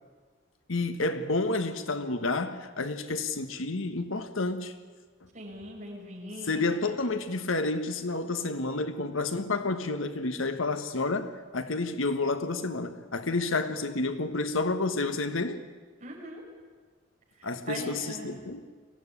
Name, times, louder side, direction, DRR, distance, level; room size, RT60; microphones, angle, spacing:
voice 1, 0.7-4.7 6.4-15.6 17.4-18.6, left 3 dB, 80° left, 1.5 m, -30 dB
voice 2, 5.3-6.8 16.0-16.4 17.4-18.4, right 1 dB, 35° right, 6.4 m, -41 dB
23.5 x 16.0 x 9.9 m
head